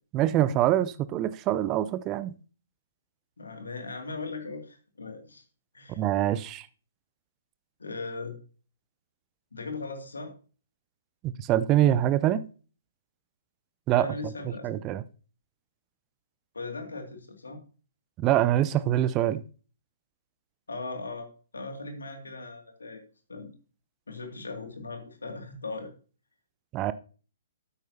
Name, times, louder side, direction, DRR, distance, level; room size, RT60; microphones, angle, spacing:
voice 1, 0.1-2.3 6.0-6.7 11.2-12.4 13.9-14.1 14.6-15.0 18.2-19.4 26.7-26.9, right 12 dB, 25° right, 0.5 m, -24 dB
voice 2, 3.4-5.4 5.7-6.0 7.8-8.3 9.5-10.3 13.9-15.0 16.5-17.6 20.7-21.3 21.5-23.0 23.3-23.5 24.1-25.9, left 3 dB, 70° left, 2.2 m, -38 dB
12.0 x 9.2 x 2.7 m
figure-of-eight pair, 120°, 0 cm